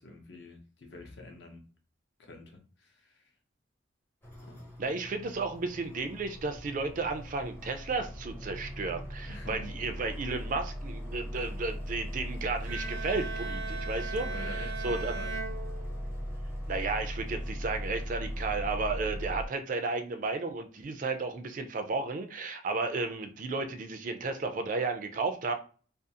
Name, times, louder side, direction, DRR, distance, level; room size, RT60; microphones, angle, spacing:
voice 1, 0.0-1.6 2.2-3.2 4.4-4.6 9.3-9.9 14.1-15.4, left 2 dB, 60° left, 0.6 m, -47 dB
sound 1, 4.2-19.5, equal, 10° left, 0.5 m, -39 dB
voice 2, 4.8-15.1 16.7-25.5, right 3 dB, 40° right, 0.3 m, -33 dB
Bowed string instrument, 12.7-16.4, right 4 dB, 80° right, 0.6 m, -39 dB
2.5 x 2.3 x 2.7 m
head